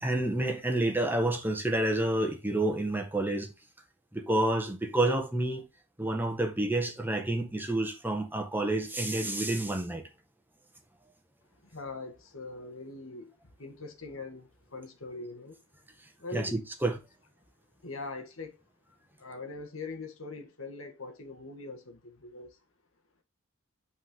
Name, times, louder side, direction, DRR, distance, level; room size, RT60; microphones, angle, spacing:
voice 1, 0.0-3.5 4.1-5.6 6.0-10.0 16.3-17.0, right 1 dB, 10° right, 1.6 m, -29 dB
voice 2, 11.6-13.3 13.6-15.6 16.2-16.6 17.8-18.6 19.2-22.6, left 3 dB, 85° left, 1.8 m, -42 dB
8.8 x 4.8 x 3.7 m
head